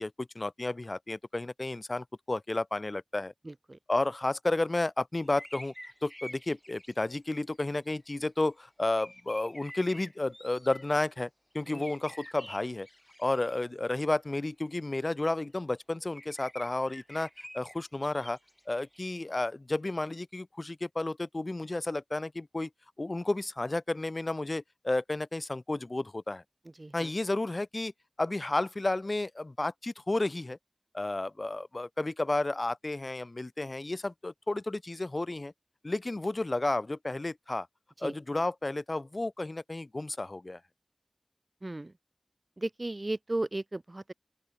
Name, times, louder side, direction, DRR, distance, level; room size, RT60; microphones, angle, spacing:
voice 1, 0.0-3.3 3.9-5.7 6.0-11.3 11.5-12.9 13.2-17.3 17.5-18.4 18.7-22.7 23.0-26.4 26.9-27.9 28.2-30.6 30.9-35.5 35.8-37.7 38.0-40.6, left 2 dB, 75° left, 0.4 m, -32 dB
voice 2, 3.4-3.8 11.7-11.9 26.8-27.1 38.0-38.2 41.6-41.9 42.6-44.1, right 2 dB, 65° right, 0.5 m, -35 dB
sound 1, 5.2-7.1 7.5-8.4 8.8-10.9 11.6-13.6 16.1-19.1, equal, 10° left, 1.1 m, -49 dB
open air
wide cardioid pair, 40°, 0 cm